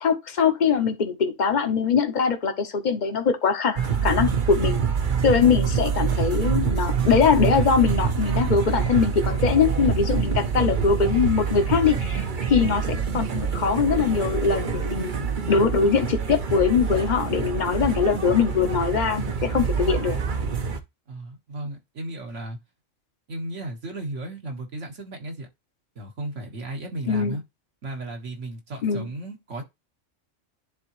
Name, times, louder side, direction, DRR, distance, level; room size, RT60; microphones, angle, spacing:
voice 1, 0.0-4.8 5.2-15.1 15.5-20.2 27.1-27.4 28.8-29.1, left 6 dB, 40° left, 1.0 m, -22 dB
sound 1, 3.8-20.8, right 6 dB, 45° right, 0.8 m, -26 dB
voice 2, 21.1-22.6 23.3-25.5 26.0-27.4 27.8-29.6, right 2 dB, 70° right, 1.8 m, -35 dB
10.5 x 3.7 x 3.0 m
omnidirectional pair, 1.3 m